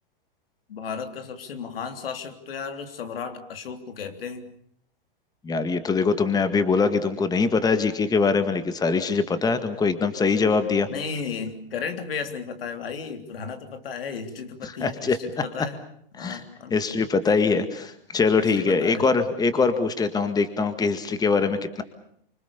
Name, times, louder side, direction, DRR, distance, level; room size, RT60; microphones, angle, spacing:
voice 1, 0.7-4.5 10.9-15.8 16.1-17.1 18.6-19.1, left 6 dB, 75° left, 7 dB, 3.6 m, -34 dB
voice 2, 5.4-10.9 14.6-15.2 16.2-16.4 16.7-21.8, left 4 dB, 15° left, 10 dB, 1.9 m, -23 dB
26.0 x 25.0 x 7.0 m, 0.67 s
hypercardioid pair, 125°, 29 cm